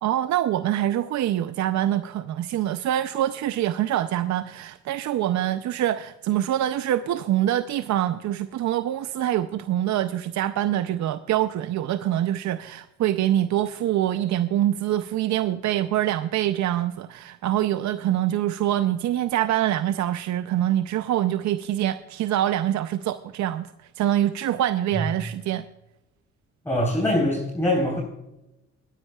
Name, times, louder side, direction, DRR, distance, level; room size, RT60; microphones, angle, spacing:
voice 1, 0.0-25.6, right 12 dB, 70° right, 11 dB, 0.6 m, -25 dB
voice 2, 26.6-28.0, left 1 dB, 5° left, -5 dB, 3.9 m, -23 dB
21.5 x 10.0 x 2.3 m, 0.93 s
cardioid pair, 90°, 30 cm